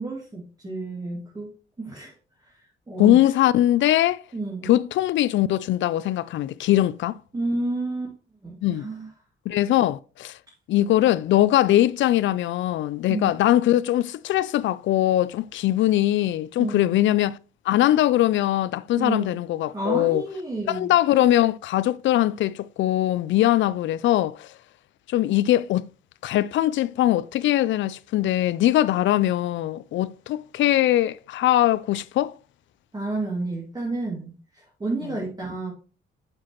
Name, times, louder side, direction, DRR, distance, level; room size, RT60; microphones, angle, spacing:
voice 1, 0.0-1.5 1.8-2.1 2.9-3.2 4.3-4.7 7.3-8.1 8.4-9.1 13.1-13.3 16.6-16.9 19.0-19.3 19.7-20.9 32.9-34.4 34.8-35.7, right 2 dB, 20° right, 2.6 m, -30 dB
voice 2, 3.0-4.2 4.6-7.2 8.6-8.9 9.5-10.4 10.7-17.4 17.7-20.2 20.7-24.5 25.1-25.9 26.2-32.3, left 13 dB, 70° left, 0.4 m, -21 dB
7.5 x 6.1 x 3.0 m
cardioid pair, 90°, 20 cm